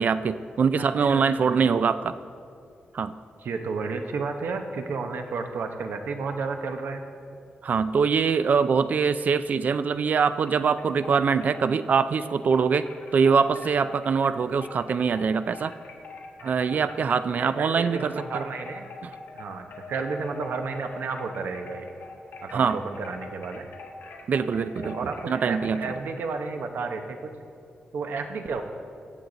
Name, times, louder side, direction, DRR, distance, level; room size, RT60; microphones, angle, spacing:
voice 1, 0.0-2.2 2.9-3.1 7.6-12.9 13.1-15.7 16.4-18.4 19.0-19.1 22.5-22.8 24.3-25.8, right 5 dB, 50° right, 13 dB, 0.3 m, -23 dB
voice 2, 1.0-1.6 3.4-7.0 16.4-16.9 17.4-18.9 19.3-21.9 22.4-23.7 24.8-27.3 27.9-28.6, right 4 dB, 80° right, 6 dB, 0.9 m, -32 dB
sound 1, 10.4-17.6 17.9-26.0, left 4 dB, 75° left, 1.2 m, -44 dB
15.5 x 8.0 x 3.9 m, 2.4 s
wide cardioid pair, 150°, 3 cm